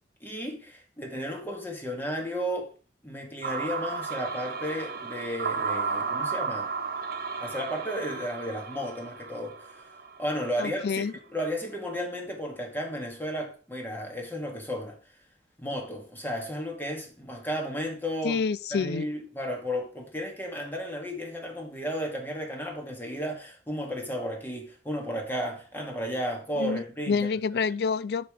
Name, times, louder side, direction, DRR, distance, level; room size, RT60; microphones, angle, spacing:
voice 1, 0.2-2.7 3.0-6.7 7.4-9.9 10.2-11.0 11.3-15.0 15.6-18.4 18.7-27.3, equal, 10° left, 1.9 m, -33 dB
sound 1, 3.4-10.6, right 5 dB, 55° right, 1.2 m, -33 dB
voice 2, 10.6-11.1 18.2-19.1 26.6-28.3, left 5 dB, 65° left, 0.4 m, -28 dB
9.7 x 5.2 x 4.8 m
head